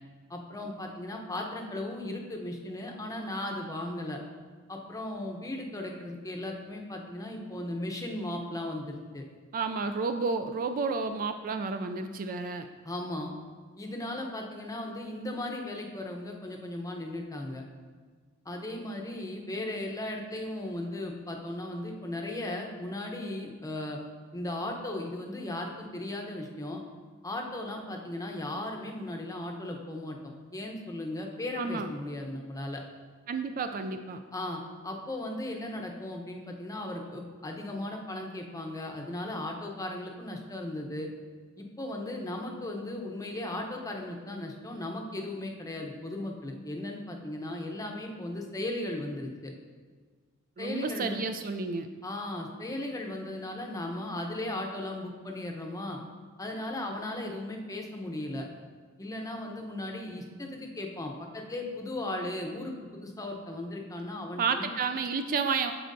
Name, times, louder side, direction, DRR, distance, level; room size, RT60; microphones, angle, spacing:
voice 1, 0.3-4.2 4.7-9.2 12.8-13.3 13.8-17.6 18.5-24.0 24.3-26.8 27.2-32.8 34.3-41.1 41.6-49.5 50.6-51.2 52.0-56.0 56.4-58.5 59.0-62.7 63.0-64.7, left 1 dB, 15° left, 1 dB, 0.7 m, -36 dB
voice 2, 9.5-12.7 31.6-31.9 33.3-34.2 50.6-51.9 64.4-65.7, right 4 dB, 40° right, 8 dB, 0.3 m, -31 dB
13.0 x 4.5 x 2.6 m, 1.5 s
head